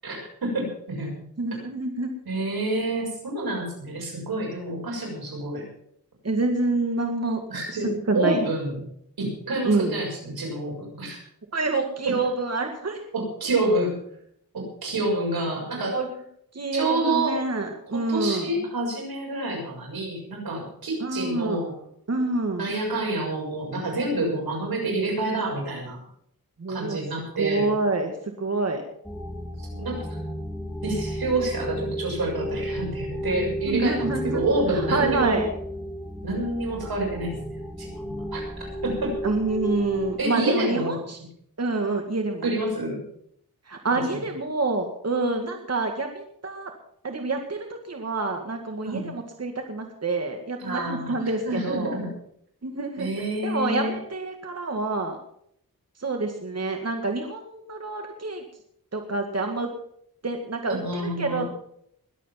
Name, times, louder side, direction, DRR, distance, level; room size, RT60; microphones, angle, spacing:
voice 1, 0.0-1.2 2.2-5.7 7.5-8.8 9.2-11.2 12.0-12.2 13.1-13.9 14.5-16.0 16.7-17.4 17.9-21.7 22.6-26.0 26.7-27.7 29.6-30.1 30.8-35.4 36.2-37.3 37.8-39.2 40.2-41.0 42.4-43.0 43.9-44.2 48.8-49.1 50.6-52.1 53.0-54.0 60.7-61.4, right 2 dB, 90° right, 0 dB, 6.6 m, -28 dB
voice 2, 1.4-2.1 6.2-7.4 7.8-8.4 9.6-10.0 11.5-13.0 15.9-16.1 16.5-18.5 21.0-21.6 22.1-22.7 26.6-27.0 27.4-28.8 33.7-34.4 34.7-35.5 39.2-41.2 41.6-42.5 43.7-46.7 47.0-52.0 52.6-53.1 53.4-55.2 56.0-58.4 58.9-59.7 60.2-61.5, right 3 dB, 45° right, 4 dB, 2.0 m, -27 dB
sound 1, 29.0-40.1, equal, 5° left, 3.0 m, -33 dB
21.5 x 8.4 x 5.8 m, 0.68 s
wide cardioid pair, 70°, 35 cm